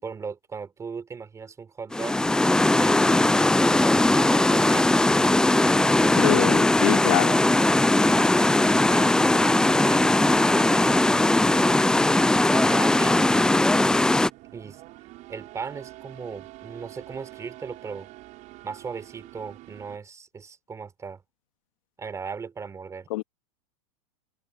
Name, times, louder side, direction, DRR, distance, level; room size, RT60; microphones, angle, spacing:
voice 1, 0.0-2.2 2.8-6.2 8.0-11.7 12.5-13.9 14.5-14.8 15.3-18.1 18.6-21.2 22.0-23.1, right 5 dB, 15° right, 4.1 m, -37 dB
sound 1, 1.9-14.3, left 2 dB, 5° left, 0.6 m, -20 dB
voice 2, 6.2-7.4 23.1-23.2, left 18 dB, 65° left, 2.5 m, -25 dB
sound 2, 9.7-20.0, right 19 dB, 45° right, 7.0 m, -47 dB
open air
hypercardioid pair, 125°, 18 cm